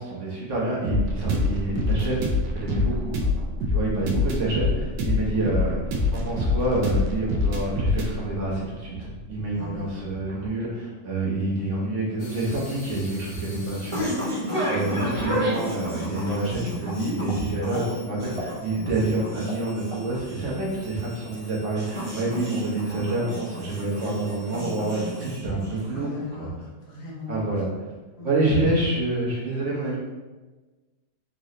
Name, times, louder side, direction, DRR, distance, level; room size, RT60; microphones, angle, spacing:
voice 1, 0.0-3.1 3.7-5.8 6.1-14.3 14.7-26.5 27.3-27.7 28.2-30.0, right 2 dB, 50° right, -5 dB, 1.3 m, -27 dB
sound 1, 0.8-10.5, left 2 dB, 75° right, 1.2 m, -26 dB
voice 2, 9.5-9.9 14.4-14.8 25.9-27.5 28.2-28.7, left 2 dB, 70° left, -4 dB, 1.5 m, -39 dB
sound 2, 12.2-25.4, left 2 dB, 40° left, 0.5 m, -49 dB
sound 3, 12.8-26.1, equal, 35° right, 0.5 m, -32 dB
3.8 x 2.7 x 3.1 m, 1.3 s
omnidirectional pair, 1.8 m